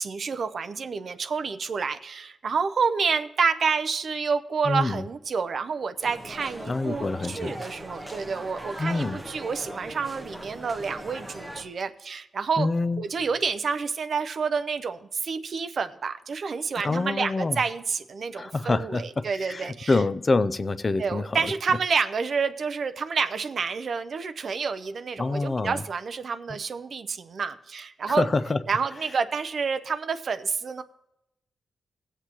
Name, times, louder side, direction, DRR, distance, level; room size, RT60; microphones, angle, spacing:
voice 1, 0.0-12.7 13.0-20.0 21.0-28.3 28.7-30.8, right 5 dB, 45° right, 9 dB, 0.5 m, -29 dB
voice 2, 4.7-5.0 6.7-7.6 8.8-9.2 12.6-13.0 16.8-17.6 18.3-19.0 19.4-21.5 25.2-25.8 28.1-28.6, left 3 dB, 25° left, 14 dB, 0.3 m, -26 dB
sound 1, 6.0-11.6, right 1 dB, 5° right, 1.1 m, -40 dB
17.5 x 8.1 x 2.9 m, 0.87 s
wide cardioid pair, 180°, 0 cm